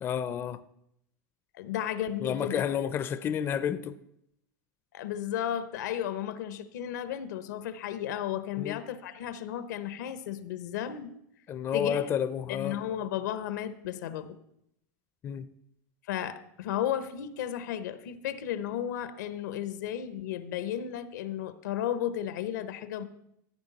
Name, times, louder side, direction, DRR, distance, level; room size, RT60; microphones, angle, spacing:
voice 1, 0.0-0.6 2.2-4.0 8.6-8.8 11.5-12.8 15.2-15.5, left 8 dB, 25° left, 0.4 m, -30 dB
voice 2, 1.5-2.6 4.9-11.1 11.7-12.1 12.5-14.4 16.1-23.0, left 10 dB, 85° left, 0.9 m, -34 dB
15.0 x 8.3 x 4.1 m
supercardioid pair, 145°, 9 cm